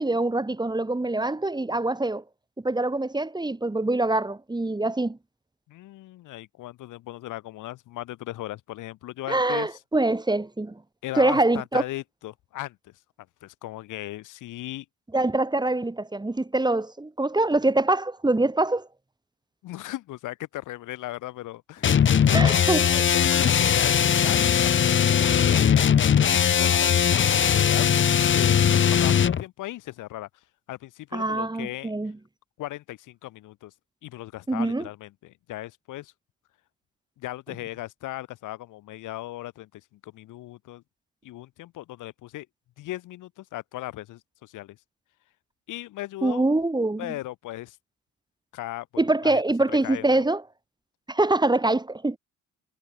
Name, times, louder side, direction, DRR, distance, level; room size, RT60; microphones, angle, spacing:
voice 1, 0.0-2.2 2.6-5.2 9.3-10.8 11.1-11.8 15.1-18.9 22.3-23.0 31.1-32.2 34.5-34.9 46.2-47.1 49.0-50.4 51.1-52.2, right 2 dB, 15° right, 2.4 m, -24 dB
voice 2, 5.7-9.8 11.0-12.9 13.4-14.8 19.6-22.0 22.2-22.6 23.1-25.9 26.4-28.0 28.3-30.3 30.7-31.9 32.6-33.7 34.0-36.1 37.2-40.8 41.2-42.5 42.8-44.8 45.7-46.4 47.0-47.8 48.5-49.4 49.8-50.3, left 16 dB, 90° left, 6.2 m, -37 dB
sound 1, 21.8-29.4, left 8 dB, 40° left, 0.9 m, -20 dB
cardioid pair, 90°, 30 cm